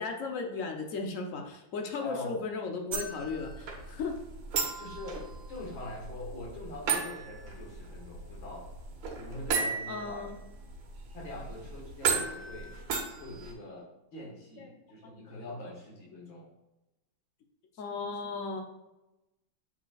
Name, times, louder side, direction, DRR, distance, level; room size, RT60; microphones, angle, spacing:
voice 1, 0.0-4.1 9.9-10.4 14.6-14.7 15.0-15.5 17.8-18.6, left 4 dB, 60° left, 2 dB, 0.8 m, -36 dB
voice 2, 2.0-2.4 4.8-8.7 9.1-10.3 11.1-12.7 13.2-16.5, left 1 dB, 75° left, -2 dB, 2.4 m, -43 dB
sound 1, 2.9-13.5, right 5 dB, 75° right, 1.7 m, -36 dB
8.3 x 5.1 x 2.4 m, 0.96 s
omnidirectional pair, 2.2 m